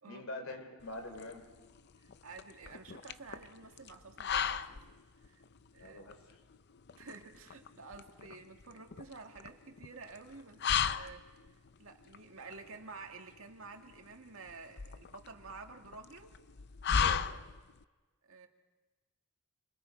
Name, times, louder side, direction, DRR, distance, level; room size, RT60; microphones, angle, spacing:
voice 1, 0.0-1.4 5.8-6.4 17.0-17.3, left 2 dB, 75° left, 6 dB, 3.4 m, -44 dB
sound 1, 0.8-17.8, left 7 dB, 50° left, 0.6 m, -37 dB
voice 2, 2.0-4.8 5.2-5.4 5.7-6.1 7.0-11.3 11.8-16.4 18.2-18.5, right 4 dB, 75° right, 3 dB, 2.1 m, -51 dB
28.0 x 25.5 x 4.6 m, 1.3 s
head